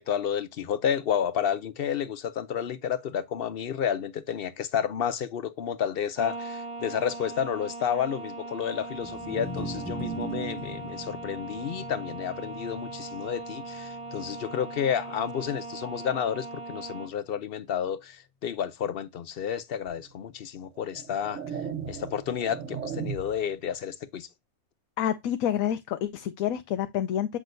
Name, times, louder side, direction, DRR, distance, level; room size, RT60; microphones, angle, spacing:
voice 1, 0.0-21.6 21.9-24.3, left 8 dB, 60° left, 0.6 m, -31 dB
sound 1, 6.2-17.1, right 3 dB, 30° right, 0.7 m, -40 dB
sound 2, 8.9-15.3, right 2 dB, 10° left, 1.7 m, -40 dB
sound 3, 19.9-20.0 20.8-23.5, right 7 dB, 65° right, 1.4 m, -37 dB
voice 2, 25.0-27.4, left 10 dB, 75° left, 1.0 m, -28 dB
7.8 x 6.2 x 2.6 m
omnidirectional pair, 1.5 m